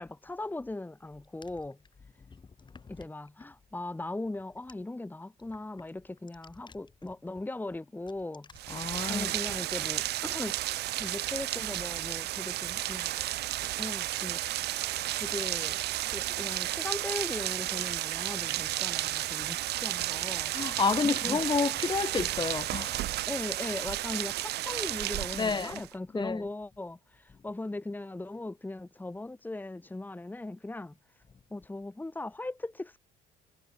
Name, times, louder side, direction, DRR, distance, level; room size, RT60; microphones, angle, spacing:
voice 1, 0.0-1.8 2.9-8.5 9.0-10.6 11.0-13.2 13.6-14.4 15.2-15.8 16.1-20.5 21.2-21.4 23.3-30.9 31.5-33.0, left 2 dB, 10° left, 2.8 m, -39 dB
Rain, 8.5-25.9, right 15 dB, 75° right, 6.3 m, -33 dB
voice 2, 8.7-9.3 20.5-23.1 25.4-25.8 26.1-26.4, left 5 dB, 25° left, 3.1 m, -30 dB
cardioid pair, 110°, 17 cm